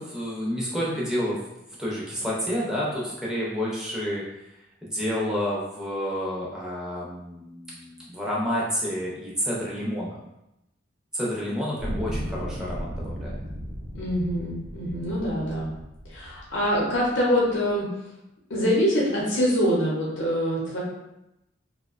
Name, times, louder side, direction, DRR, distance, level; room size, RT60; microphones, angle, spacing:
voice 1, 0.0-1.4 1.8-4.2 4.8-10.2 11.1-13.3, equal, 5° right, -6 dB, 0.6 m, -29 dB
sound 1, 11.8-17.0 17.8-17.9, equal, 55° right, 0.6 m, -35 dB
voice 2, 13.9-15.7 16.1-17.9 18.5-20.8, equal, 80° left, -5 dB, 0.7 m, -24 dB
2.7 x 2.1 x 2.4 m, 0.89 s
head